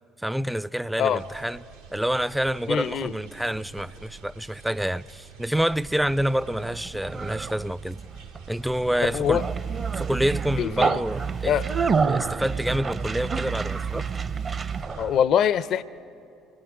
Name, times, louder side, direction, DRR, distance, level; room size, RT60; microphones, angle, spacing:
voice 1, 0.2-1.6 1.9-8.0 8.5-9.4 10.0-11.6 12.0-14.1, equal, 5° right, 0.4 m, -27 dB
sound 1, 1.1-15.1, right 7 dB, 90° right, 1.8 m, -48 dB
voice 2, 2.7-3.1 9.0-9.4 10.6-11.0 11.5-11.7 15.0-15.8, left 9 dB, 55° left, 0.5 m, -23 dB
Conversation, 5.7-15.2, right 5 dB, 35° right, 0.7 m, -29 dB
26.5 x 20.0 x 5.0 m
figure-of-eight pair, 55°, 0 cm